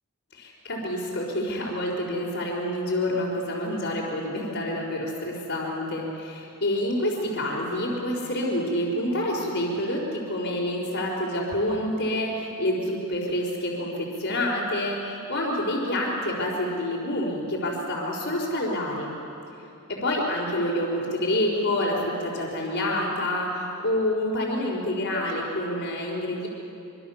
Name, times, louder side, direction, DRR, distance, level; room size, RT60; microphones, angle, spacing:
voice 1, 0.3-19.1 19.9-26.5, left 1 dB, 60° left, -8 dB, 4.3 m, -27 dB
26.0 x 24.5 x 7.2 m, 2.8 s
head